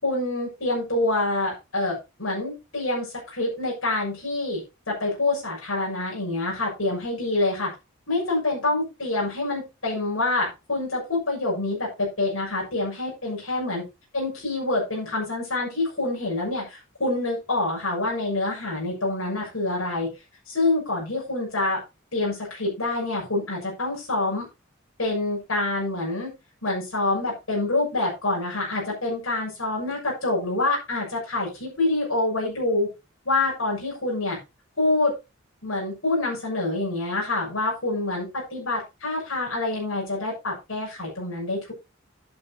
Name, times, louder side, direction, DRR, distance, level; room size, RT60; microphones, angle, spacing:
voice 1, 0.0-7.7 8.1-13.8 14.1-20.1 20.5-21.8 22.1-24.4 25.0-26.3 26.6-32.9 33.3-34.4 34.8-35.1 35.6-41.7, left 2 dB, 80° left, -3 dB, 6.9 m, -26 dB
11.5 x 11.0 x 2.9 m, 0.26 s
head